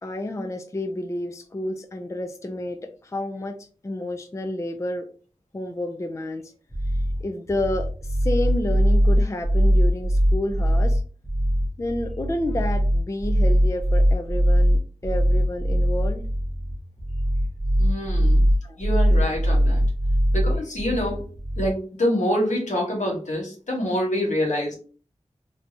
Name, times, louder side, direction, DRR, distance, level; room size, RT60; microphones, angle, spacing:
voice 1, 0.0-3.6 3.8-5.1 5.5-6.5 7.2-11.0 11.8-16.2 18.6-18.8, left 1 dB, 25° left, 5 dB, 0.4 m, -30 dB
sound 1, 6.7-21.7, equal, 5° left, 0.8 m, -21 dB
voice 2, 17.8-18.5 18.8-19.8 20.3-21.3 21.6-24.7, equal, 85° left, -2 dB, 1.3 m, -26 dB
3.3 x 2.6 x 2.7 m, 0.39 s
wide cardioid pair, 75°, 12 cm